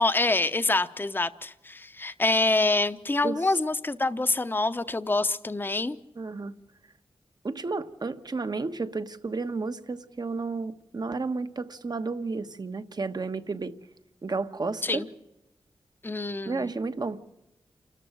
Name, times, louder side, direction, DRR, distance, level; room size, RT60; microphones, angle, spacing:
voice 1, 0.0-6.0 14.8-15.1 16.0-16.7, left 2 dB, 20° left, 0.8 m, -26 dB
voice 2, 6.2-6.5 7.4-13.7 14.2-15.0 16.4-17.2, right 3 dB, 45° right, 1.2 m, -32 dB
28.5 x 13.5 x 7.8 m
cardioid pair, 65°, 9 cm